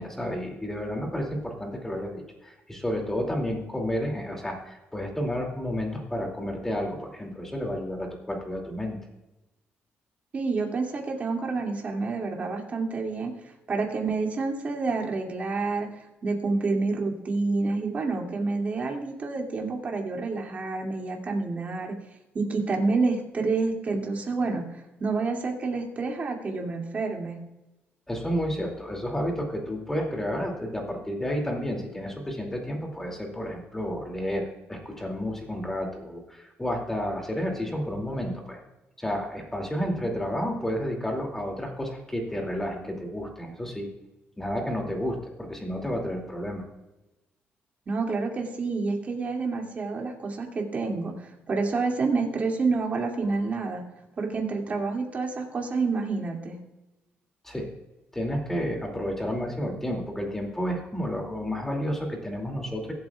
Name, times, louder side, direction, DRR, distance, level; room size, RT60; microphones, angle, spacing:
voice 1, 0.0-9.0 28.1-38.6 39.0-43.9 44.4-46.6 53.2-53.3 57.4-57.7 58.1-62.9, equal, 10° left, 1 dB, 2.6 m, -31 dB
voice 2, 10.3-22.0 22.3-24.6 25.0-27.4 47.9-53.8 54.2-56.6, right 3 dB, 35° right, 1 dB, 2.4 m, -28 dB
23.0 x 8.7 x 2.4 m, 1.0 s
cardioid pair, 140°, 4 cm